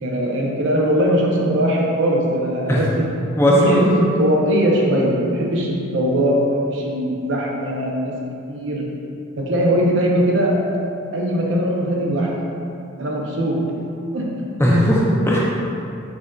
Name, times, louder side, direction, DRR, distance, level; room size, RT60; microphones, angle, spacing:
voice 1, 0.0-3.2 3.6-8.2 8.5-8.9 9.4-10.7 11.1-12.4 13.0-13.8 14.1-14.5, equal, 60° right, -2 dB, 0.5 m, -20 dB
voice 2, 3.3-3.9 14.6-15.4, equal, 10° left, -5 dB, 0.3 m, -16 dB
5.0 x 2.5 x 2.2 m, 2.6 s
head